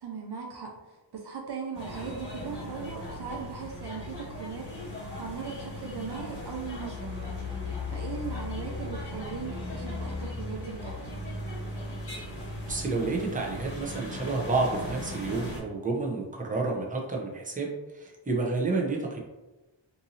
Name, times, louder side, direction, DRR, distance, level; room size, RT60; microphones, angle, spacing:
voice 1, 0.0-11.0, right 5 dB, 60° right, 0 dB, 0.5 m, -39 dB
sound 1, 1.7-15.6, left 2 dB, 30° left, 1.4 m, -37 dB
voice 2, 12.7-19.2, right 3 dB, 15° right, -1 dB, 0.6 m, -30 dB
2.7 x 2.6 x 2.7 m, 1.1 s
cardioid pair, 45°, 46 cm